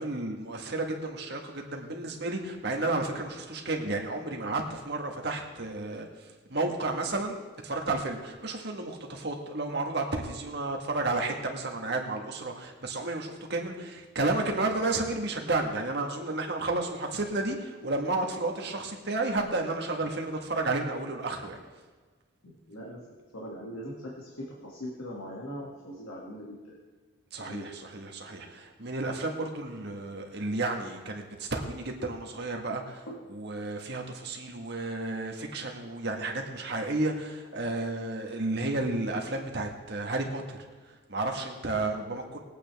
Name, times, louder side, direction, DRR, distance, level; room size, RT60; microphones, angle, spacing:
voice 1, 0.0-7.4 7.6-21.6 27.3-40.6 41.1-42.4, right 2 dB, 50° right, 2 dB, 1.7 m, -32 dB
voice 2, 22.4-23.0 23.3-26.8 27.4-27.7 33.1-33.2 42.0-42.2, equal, 80° left, -4 dB, 2.3 m, -41 dB
21.0 x 8.7 x 3.5 m, 1.4 s
head